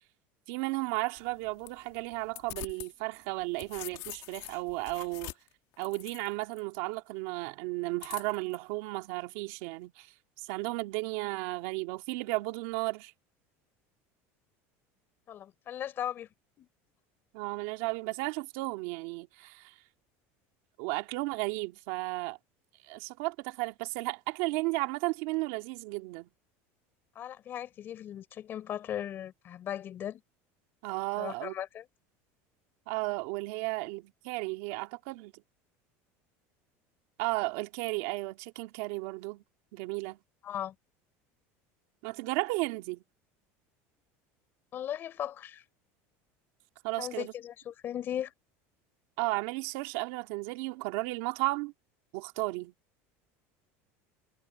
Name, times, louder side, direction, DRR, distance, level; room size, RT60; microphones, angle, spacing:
voice 1, 0.5-5.3 5.8-10.1 10.4-13.1 17.3-19.7 20.8-22.4 22.8-26.3 30.8-31.5 32.9-35.3 37.2-39.4 39.7-40.2 42.0-43.0 46.8-47.3 49.2-51.7 52.1-52.7, right 23 dB, 70° right, 2.1 m, -34 dB
sound 1, 1.2-2.9 3.3-6.6 8.0-8.6, left 19 dB, 55° left, 2.2 m, -45 dB
voice 2, 15.3-16.3 16.6-16.7 27.1-30.2 31.2-31.8 40.4-40.7 44.7-45.6 47.0-48.3, left 10 dB, 30° left, 4.8 m, -37 dB
cardioid pair, 160°, 7 cm